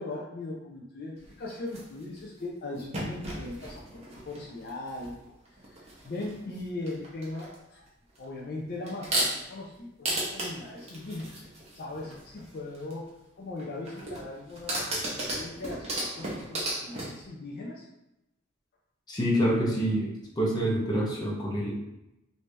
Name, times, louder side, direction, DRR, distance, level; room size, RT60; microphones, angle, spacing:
voice 1, 0.0-5.1 5.6-7.9 8.2-11.4 11.7-13.1 13.4-17.9, left 2 dB, 50° left, -3 dB, 0.5 m, -39 dB
sound 1, 1.2-2.2 2.7-5.2 5.5-6.6 6.9-7.5 8.1-8.3 8.8-9.6 10.0-12.9 13.6-17.2, right 1 dB, 35° right, 0.9 m, -34 dB
voice 2, 19.1-20.1 20.4-21.7, equal, 20° left, -4 dB, 0.8 m, -26 dB
3.2 x 2.7 x 3.3 m, 0.89 s
head